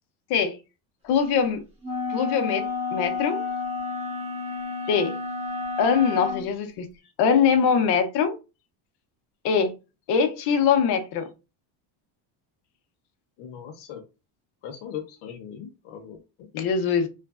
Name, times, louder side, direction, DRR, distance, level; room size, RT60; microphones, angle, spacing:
voice 1, 1.0-1.6 2.1-3.4 4.9-5.2 5.8-6.9 7.2-8.4 9.4-9.7 10.1-11.3 16.5-17.1, left 6 dB, 55° left, 0.7 m, -22 dB
sound 1, 1.8-6.4, left 4 dB, 15° right, 1.0 m, -30 dB
voice 2, 13.4-14.0 14.6-16.5, left 9 dB, 90° left, 0.7 m, -39 dB
3.0 x 2.4 x 2.3 m
cardioid pair, 145°, 46 cm